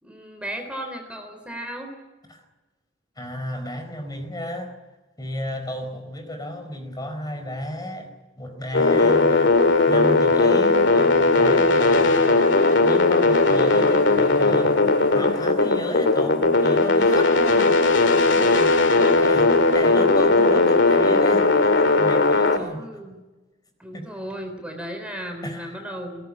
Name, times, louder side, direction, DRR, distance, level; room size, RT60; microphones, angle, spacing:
voice 1, 0.0-1.9 22.6-23.2 23.8-26.2, equal, 5° right, 4 dB, 3.9 m, -35 dB
voice 2, 3.2-4.7 5.2-9.5 9.9-12.4 12.8-14.8 15.1-22.9 23.9-24.1 25.4-25.7, left 1 dB, 20° left, 6 dB, 4.5 m, -34 dB
sound 1, 8.7-22.6, left 3 dB, 80° left, 2.4 m, -18 dB
21.0 x 19.0 x 9.8 m, 1.2 s
head